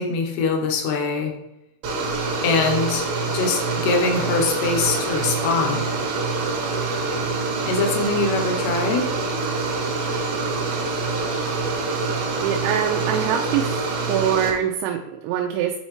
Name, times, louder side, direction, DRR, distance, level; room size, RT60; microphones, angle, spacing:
voice 1, 0.0-1.3 2.4-3.0 3.3-5.9 7.7-9.1, left 4 dB, 80° left, 2 dB, 2.4 m, -23 dB
sound 1, 1.8-14.5, right 3 dB, 70° right, 2.8 m, -25 dB
voice 2, 12.4-13.8 14.1-15.8, right 9 dB, 90° right, 2 dB, 3.3 m, -23 dB
8.5 x 4.2 x 3.1 m, 0.88 s
omnidirectional pair, 5.9 m